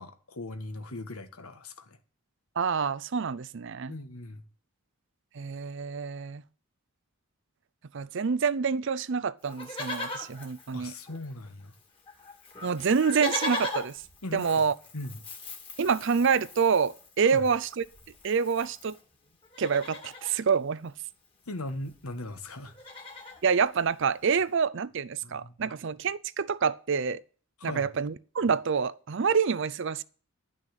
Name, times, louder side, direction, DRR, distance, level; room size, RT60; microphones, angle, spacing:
voice 1, 0.0-2.0 3.9-4.4 10.7-11.7 14.2-14.6 14.9-15.2 17.3-17.5 21.5-22.7 25.2-25.7 27.6-28.0, left 2 dB, 80° left, 1.5 m, -39 dB
voice 2, 2.6-3.9 5.3-6.4 7.9-10.9 12.6-14.0 14.3-14.7 15.8-17.8 18.2-18.9 19.6-20.9 23.4-27.2 27.6-30.0, right 6 dB, 55° right, 0.5 m, -27 dB
Livestock farm animals working animals, 9.5-11.5 11.7-11.8 12.1-19.0 19.4-20.4 21.6-21.7 21.8-22.1 22.5-23.4 24.0-24.1, left 2 dB, 25° left, 2.1 m, -39 dB
11.5 x 6.3 x 9.0 m
head